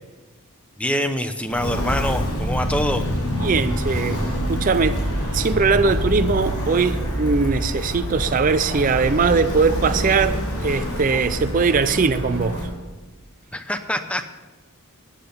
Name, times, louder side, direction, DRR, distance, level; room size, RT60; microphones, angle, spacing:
voice 1, 0.8-3.0 13.5-14.3, left 1 dB, 5° left, 0.8 m, -25 dB
Walk footsteps, 1.5-12.7, equal, 90° left, 4.4 m, -26 dB
voice 2, 3.4-5.0 5.3-12.7, right 4 dB, 35° right, 0.4 m, -21 dB
13.5 x 9.9 x 5.6 m
head